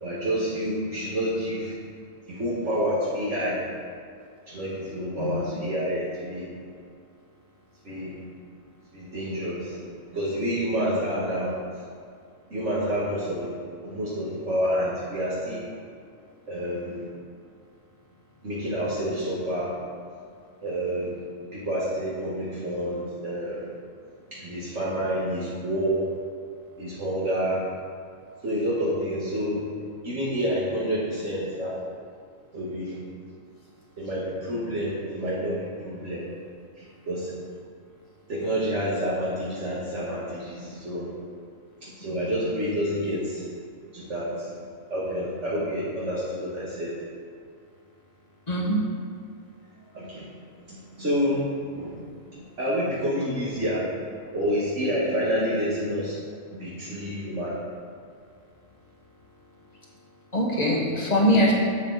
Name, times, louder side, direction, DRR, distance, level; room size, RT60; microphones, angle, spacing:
voice 1, 0.0-1.7 2.3-3.6 4.5-6.5 7.8-8.2 8.9-11.8 12.5-13.6 13.8-15.6 16.5-17.1 18.4-19.8 20.6-21.2 21.5-23.7 24.3-26.1 26.8-27.6 28.4-29.6 30.0-31.8 32.5-33.0 34.0-36.3 36.8-37.4 38.3-41.1 41.8-43.5 43.9-44.5 44.9-46.9 49.9-50.3 50.7-51.9 52.3-53.9 54.3-56.2 56.5-57.6, equal, 60° right, -9 dB, 2.2 m, -28 dB
voice 2, 5.2-5.5 42.1-42.3 48.5-48.8 60.3-61.5, equal, 30° left, -3 dB, 1.8 m, -23 dB
12.0 x 7.5 x 4.1 m, 2.2 s
omnidirectional pair, 1.4 m